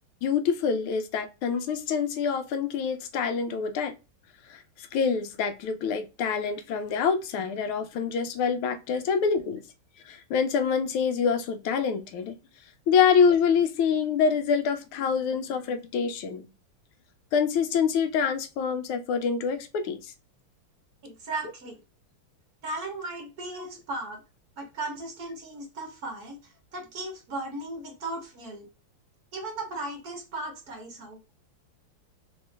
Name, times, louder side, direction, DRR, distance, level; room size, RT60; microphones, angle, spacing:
voice 1, 0.2-3.9 4.5-9.6 10.1-12.4 12.9-16.5 17.3-20.1, left 6 dB, 80° left, 1.5 m, -26 dB
voice 2, 21.0-21.8 22.6-24.2 24.6-28.7 29.3-31.2, right 2 dB, 50° right, 1.4 m, -36 dB
3.6 x 3.1 x 3.3 m
omnidirectional pair, 2.3 m